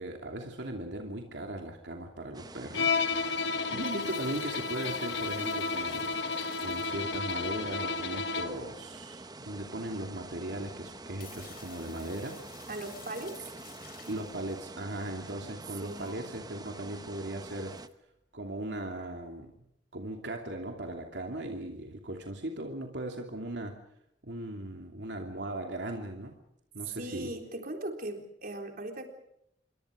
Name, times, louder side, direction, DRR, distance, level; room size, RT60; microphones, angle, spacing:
voice 1, 0.0-2.9 3.2-3.4 3.7-6.2 6.6-12.4 14.1-17.8 18.3-19.5 19.9-23.8 24.2-26.4 26.7-27.3, right 1 dB, 75° right, 2 dB, 2.8 m, -38 dB
sound 1, 2.3-17.9, right 2 dB, 25° right, 1.0 m, -47 dB
Bowed string instrument, 2.7-8.7, left 4 dB, 75° left, 1.4 m, -32 dB
sound 2, 3.7-7.6 8.4-8.5 10.5-10.6 10.9-14.6 15.1-15.3 16.0-16.1 17.7-17.9, left 8 dB, 60° left, 3.7 m, -53 dB
voice 2, 12.7-13.4 15.8-16.1 26.9-29.1, right 1 dB, 55° right, 3 dB, 3.8 m, -39 dB
27.0 x 24.0 x 5.1 m, 0.77 s
head